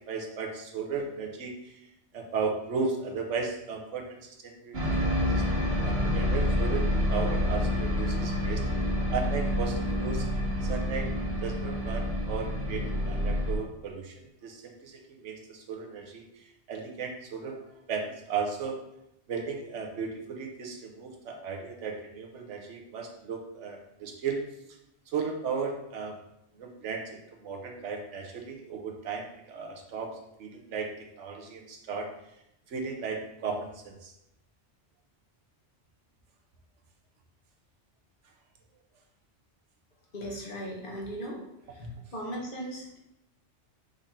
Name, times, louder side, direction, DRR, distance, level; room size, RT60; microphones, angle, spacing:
voice 1, 0.0-1.9 2.1-5.4 5.8-6.8 7.1-8.6 9.1-10.2 10.6-11.1 11.4-18.8 19.3-24.4 25.1-26.2 26.5-32.1 32.7-34.1, right 5 dB, 85° right, 2 dB, 1.1 m, -35 dB
sound 1, 4.7-13.5, left 1 dB, 60° right, 1.4 m, -28 dB
voice 2, 40.1-41.4 41.7-43.0, equal, 50° left, -2 dB, 1.2 m, -38 dB
5.1 x 2.8 x 3.6 m, 0.83 s
omnidirectional pair, 1.2 m